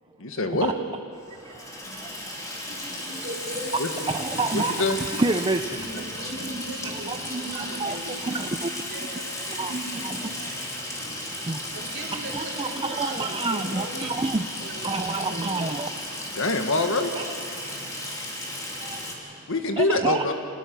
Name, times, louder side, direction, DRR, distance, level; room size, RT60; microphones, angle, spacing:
voice 1, 0.2-0.7 3.8-3.9 4.5-5.0 16.3-17.1 19.5-20.3, left 2 dB, 65° left, 6 dB, 1.6 m, -24 dB
Water tap faucet / Sink (filling or washing), 1.2-19.1, left 1 dB, 15° left, 3.2 m, -35 dB
voice 2, 1.3-2.1 3.1-3.2 4.1-5.8 7.1-7.2 7.8-8.0 8.2-8.7 9.6-9.7 11.5-11.6 12.3-14.4 14.8-15.9 17.1-17.2 17.8-18.0 18.8-19.5 19.8-20.3, right 3 dB, 20° right, 7 dB, 0.6 m, -29 dB
voice 3, 2.7-4.4 5.0-5.2 5.8-10.6 11.0-11.2 11.7-14.1 14.6-15.8, right 1 dB, 55° right, -2 dB, 4.1 m, -38 dB
26.0 x 19.5 x 6.2 m, 2.4 s
head